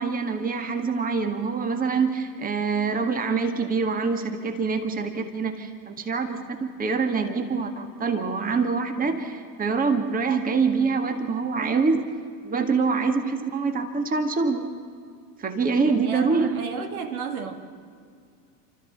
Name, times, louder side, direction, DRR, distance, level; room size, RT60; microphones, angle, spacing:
voice 1, 0.0-12.0 12.4-14.7 15.4-16.6, right 4 dB, 15° right, 1.8 m, -25 dB
voice 2, 15.9-17.6, right 5 dB, 60° right, 2.3 m, -33 dB
29.0 x 13.5 x 7.7 m
figure-of-eight pair, 90°, 48 cm